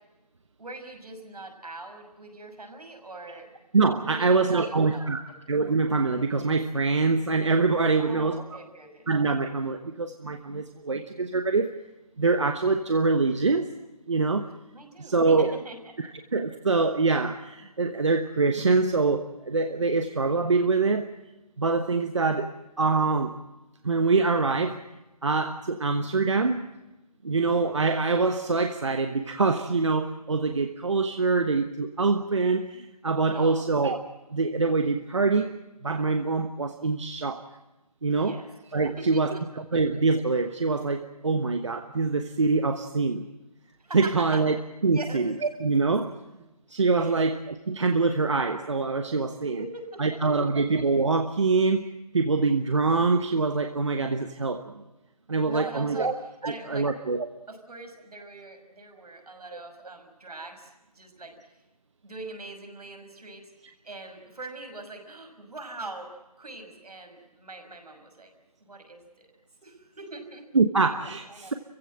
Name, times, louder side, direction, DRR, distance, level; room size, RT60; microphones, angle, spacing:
voice 1, 0.6-3.5 4.0-5.1 8.0-9.1 14.7-16.1 33.3-33.6 38.0-38.5 38.8-39.4 43.8-44.4 44.9-45.3 46.9-47.2 49.5-50.4 55.4-56.1 56.4-56.9 57.5-61.3 62.0-68.3 68.6-69.3 69.6-70.5 71.0-71.5, right 2 dB, 70° right, 5 dB, 6.2 m, -42 dB
voice 2, 3.7-5.2 5.5-8.4 9.1-11.7 12.2-13.7 14.1-14.5 15.0-15.6 16.0-21.1 21.6-22.5 22.8-23.3 23.8-24.8 25.2-26.7 27.2-34.0 34.3-35.5 35.8-37.5 38.0-38.4 38.7-43.3 43.9-44.6 44.8-45.3 45.6-46.1 46.7-47.4 47.7-49.6 50.0-51.9 52.1-54.8 55.3-56.1 56.4-57.3 59.5-59.6 70.5-71.5, right 3 dB, 45° right, 7 dB, 1.2 m, -24 dB
29.0 x 16.0 x 7.7 m, 1.0 s
hypercardioid pair, 175°, 20 cm